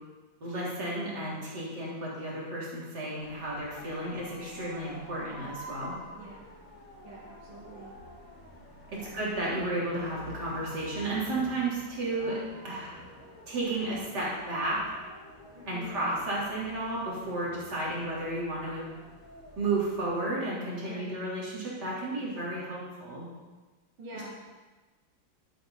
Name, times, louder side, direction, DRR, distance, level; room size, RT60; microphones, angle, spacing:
voice 1, 0.4-5.9 8.9-12.9 13.5-14.8 15.7-18.9 19.6-23.3, right 2 dB, 55° right, -6 dB, 4.2 m, -33 dB
sound 1, 3.2-20.2, left 1 dB, 70° left, 4.1 m, -48 dB
voice 2, 7.0-7.9 9.0-9.1 15.5-16.0 20.8-21.2 24.0-24.3, right 1 dB, 85° right, -5 dB, 2.7 m, -45 dB
12.0 x 11.5 x 4.1 m, 1.3 s
omnidirectional pair, 2.2 m